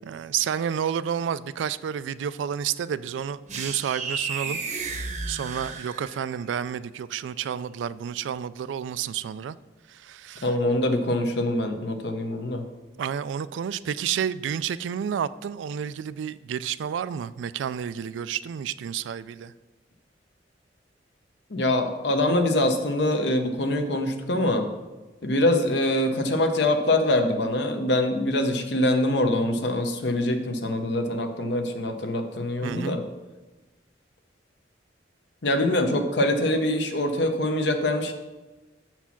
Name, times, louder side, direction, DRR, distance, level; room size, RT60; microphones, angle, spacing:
voice 1, 0.0-4.6 4.9-9.6 9.9-10.5 13.0-19.5 32.6-33.0, right 8 dB, 85° right, 17 dB, 0.3 m, -30 dB
sound 1, 3.5-6.4, right 4 dB, 40° right, 0.8 m, -33 dB
voice 2, 10.4-12.6 21.5-24.7 25.2-33.0 35.4-38.1, left 1 dB, 65° left, 6 dB, 0.8 m, -24 dB
7.0 x 4.5 x 5.8 m, 1.2 s
head